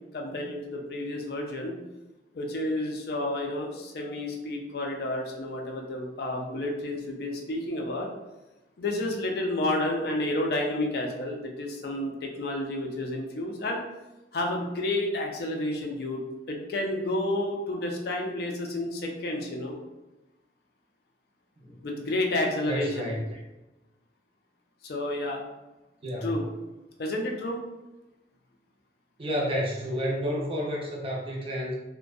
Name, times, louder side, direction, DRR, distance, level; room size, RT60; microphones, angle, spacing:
voice 1, 0.1-1.8 2.3-8.1 8.8-13.8 14.3-16.2 16.5-19.8 21.8-23.1 24.8-25.4 26.2-26.5 27.0-27.6, left 1 dB, 60° left, 1 dB, 0.4 m, -30 dB
voice 2, 22.7-23.2 26.0-26.3 29.2-31.7, equal, 30° right, -3 dB, 0.5 m, -30 dB
2.6 x 2.1 x 2.3 m, 1.0 s
head